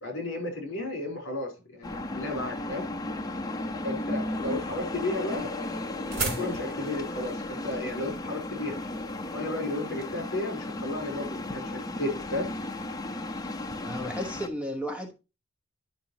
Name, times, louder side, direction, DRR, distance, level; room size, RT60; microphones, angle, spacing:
voice 1, 0.0-2.9 3.8-5.5 6.1-8.8 9.3-12.5, left 2 dB, 60° left, 3.6 m, -33 dB
sound 1, 1.8-14.5, left 2 dB, 15° left, 0.7 m, -35 dB
sound 2, 4.4-9.6, right 3 dB, 45° right, 2.7 m, -38 dB
voice 2, 13.8-15.1, equal, 5° right, 1.0 m, -33 dB
10.5 x 5.9 x 2.9 m
head